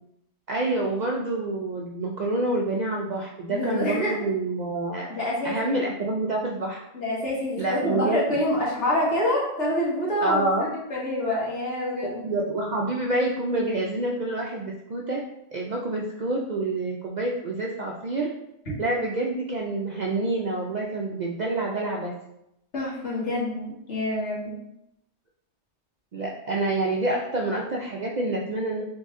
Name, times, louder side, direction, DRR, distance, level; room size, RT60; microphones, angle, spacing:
voice 1, 0.5-5.1 5.4-6.8 7.6-8.2 10.2-10.7 12.1-15.2 15.5-18.3 18.8-22.2 26.1-28.8, right 2 dB, 60° right, -1 dB, 0.4 m, -27 dB
voice 2, 3.5-4.1 5.1-5.7 6.9-12.3 18.7-18.8 22.7-24.5, left 1 dB, 75° left, -6 dB, 1.8 m, -27 dB
4.1 x 3.1 x 3.5 m, 0.83 s
omnidirectional pair, 1.2 m